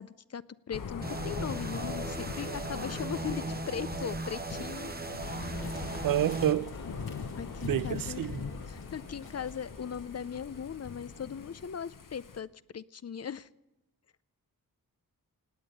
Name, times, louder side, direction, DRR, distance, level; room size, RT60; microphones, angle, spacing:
voice 1, 0.0-4.9 5.3-5.5 7.4-8.3 8.7-12.5 12.7-13.5, left 7 dB, 45° left, 0.5 m, -39 dB
Thunder / Rain, 0.7-12.4, left 6 dB, 60° left, 1.1 m, -42 dB
sound 1, 1.0-6.5, right 3 dB, 25° right, 0.9 m, -38 dB
sound 2, 5.2-11.7, left 3 dB, 80° left, 2.2 m, -45 dB
voice 2, 6.0-6.7 7.6-8.5, right 12 dB, 65° right, 0.5 m, -29 dB
18.0 x 8.7 x 7.9 m
cardioid pair, 55°, 36 cm